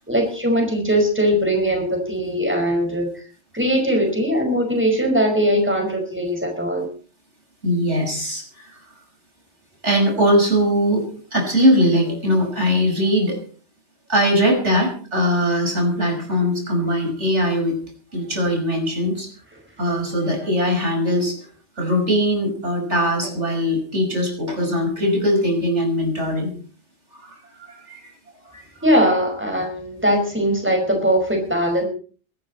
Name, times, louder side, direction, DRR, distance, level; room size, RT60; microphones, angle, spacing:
voice 1, 0.1-3.1 3.5-6.8 28.8-31.9, equal, 10° right, 2 dB, 5.3 m, -20 dB
voice 2, 7.6-8.8 9.8-13.4 14.1-17.8 18.1-19.3 19.8-21.4 21.8-26.5 27.1-28.1 28.4-28.6, equal, 75° right, 2 dB, 6.2 m, -21 dB
23.0 x 13.0 x 4.4 m, 0.41 s
omnidirectional pair, 1.2 m